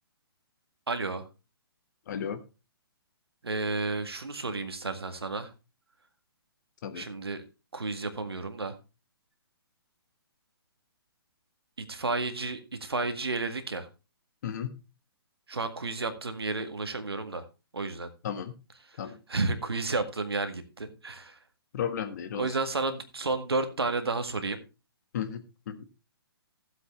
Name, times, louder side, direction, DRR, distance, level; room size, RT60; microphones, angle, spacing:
voice 1, 0.9-1.3 3.4-5.5 7.0-7.4 7.7-8.8 11.8-13.9 15.5-17.5 17.7-18.1 19.3-21.4 22.4-24.6, right 3 dB, 75° right, 8 dB, 1.8 m, -32 dB
voice 2, 2.1-2.4 6.8-7.1 14.4-14.7 18.2-18.5 19.0-19.2 21.7-22.6 25.1-25.9, left 8 dB, 45° left, 10 dB, 1.5 m, -34 dB
15.0 x 7.9 x 3.2 m, 0.29 s
figure-of-eight pair, 130°, 13 cm